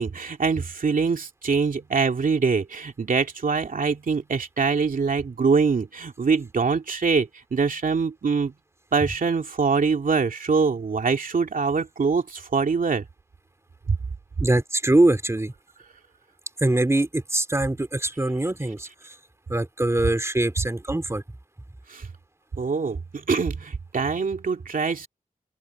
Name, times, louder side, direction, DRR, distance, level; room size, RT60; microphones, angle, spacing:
voice 1, 0.0-8.5 8.9-13.0 13.9-14.0 21.9-22.1 22.5-25.1, right 5 dB, 70° right, 2.7 m, -24 dB
voice 2, 14.4-15.5 16.6-19.1 19.5-21.2, right 2 dB, 20° right, 2.7 m, -23 dB
open air
wide cardioid pair, 75°, 15 cm